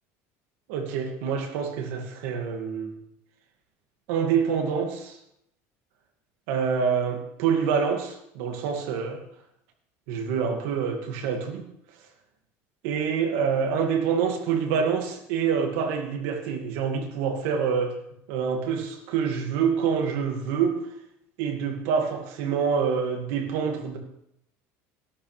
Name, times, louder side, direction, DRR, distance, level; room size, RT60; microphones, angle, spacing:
voice 1, 0.7-3.0 4.1-5.2 6.5-9.2 10.1-11.6 12.8-17.9 18.3-20.8 21.4-24.0, right 6 dB, 80° right, 4 dB, 2.3 m, -26 dB
13.0 x 12.5 x 3.5 m, 0.74 s
cardioid pair, 150°, 7 cm